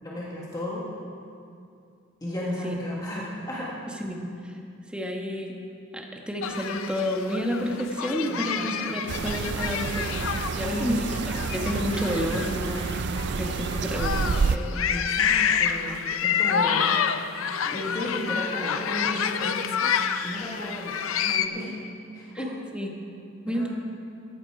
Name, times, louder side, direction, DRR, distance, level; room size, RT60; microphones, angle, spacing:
voice 1, 0.0-0.8 2.2-3.7 8.3-9.0 10.6-11.0 14.9-16.9 17.6-20.0 20.2-21.7 22.1-22.6 23.5-23.7, left 1 dB, 20° left, -6 dB, 1.6 m, -34 dB
voice 2, 4.9-5.5 5.9-10.3 10.5-14.9 16.7-16.8 22.3-22.4 22.7-22.9 23.5-23.7, equal, 5° right, 1 dB, 1.2 m, -30 dB
sound 1, 6.4-21.5, left 7 dB, 75° left, 0.6 m, -28 dB
sound 2, 9.1-14.6, right 5 dB, 55° right, 0.4 m, -29 dB
15.0 x 10.0 x 4.8 m, 2.4 s
head